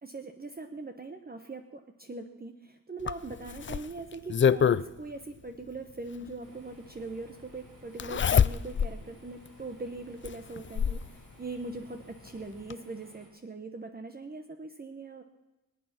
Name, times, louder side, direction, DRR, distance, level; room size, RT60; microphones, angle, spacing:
voice 1, 0.0-15.2, right 3 dB, 25° right, 5 dB, 1.0 m, -41 dB
Zipper (clothing), 3.1-4.8 6.3-6.4 8.0-9.0 9.4-9.5 10.2-11.1 12.3-12.4 12.7-12.8, left 7 dB, 35° left, 0.4 m, -25 dB
sound 1, 6.4-13.3, right 2 dB, 70° right, 6.5 m, -58 dB
23.0 x 8.9 x 6.0 m, 1.0 s
wide cardioid pair, 100°, 34 cm